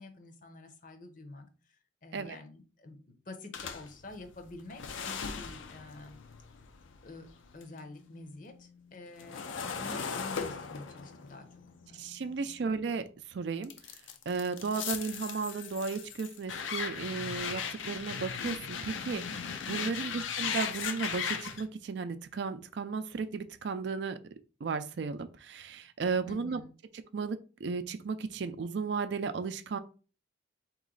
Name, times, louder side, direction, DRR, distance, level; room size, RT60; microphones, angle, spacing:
voice 1, 0.0-1.5 2.0-6.2 7.0-7.3 7.5-11.6 11.9-12.4 19.8-20.2 26.3-26.7, left 3 dB, 45° left, 7 dB, 0.7 m, -48 dB
sound 1, 3.5-7.8 8.1-13.1 13.6-21.6, left 6 dB, 80° left, 0.5 m, -38 dB
voice 2, 11.9-13.7 14.3-24.2 24.6-26.6 27.1-29.8, right 5 dB, 65° right, 11 dB, 0.4 m, -35 dB
4.1 x 3.0 x 3.8 m, 0.37 s
head